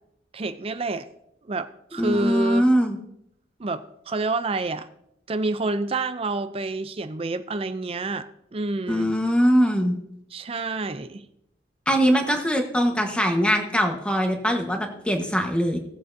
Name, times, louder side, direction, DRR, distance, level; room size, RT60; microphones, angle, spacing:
voice 1, 0.3-1.1 1.5-2.7 3.6-4.9 5.3-9.1 10.3-11.3, right 3 dB, 30° right, 11 dB, 0.5 m, -28 dB
voice 2, 2.0-3.0 8.9-10.0 11.9-15.8, equal, 5° left, 3 dB, 1.2 m, -22 dB
18.0 x 7.7 x 2.7 m, 0.77 s
head